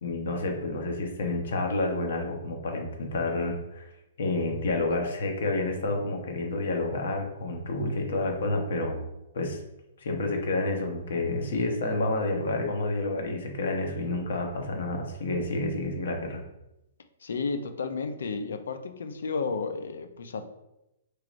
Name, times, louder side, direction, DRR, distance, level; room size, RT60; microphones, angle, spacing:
voice 1, 0.0-3.9 4.2-9.0 9.3-9.6 10.0-16.4, left 2 dB, 65° left, 2 dB, 0.9 m, -29 dB
voice 2, 17.2-20.5, left 4 dB, 90° left, 9 dB, 0.5 m, -32 dB
4.7 x 3.1 x 2.5 m, 0.89 s
hypercardioid pair, 175°, 0 cm